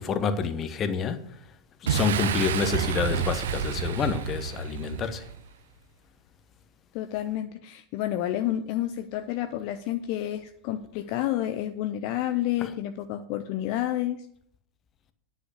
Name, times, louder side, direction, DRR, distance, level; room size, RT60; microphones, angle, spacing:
voice 1, 0.0-1.4 1.8-5.3 12.6-12.7, left 6 dB, 30° left, 1.1 m, -28 dB
Boom, 1.9-5.5, right 9 dB, 60° right, 0.8 m, -29 dB
voice 2, 6.9-14.3, left 13 dB, 45° left, 0.6 m, -30 dB
9.7 x 5.8 x 8.1 m
figure-of-eight pair, 90°, 0 cm